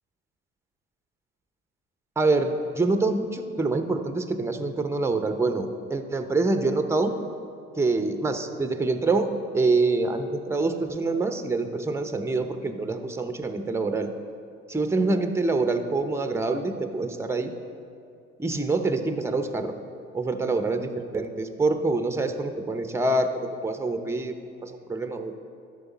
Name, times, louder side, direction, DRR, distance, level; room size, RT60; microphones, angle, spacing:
voice 1, 2.2-7.1 7.7-14.1 14.7-17.5 18.4-19.7 20.1-23.3 23.6-24.3 24.6-25.3, right 3 dB, 10° right, 7 dB, 0.7 m, -26 dB
12.5 x 5.2 x 4.1 m, 2.4 s
supercardioid pair, 70°, 32 cm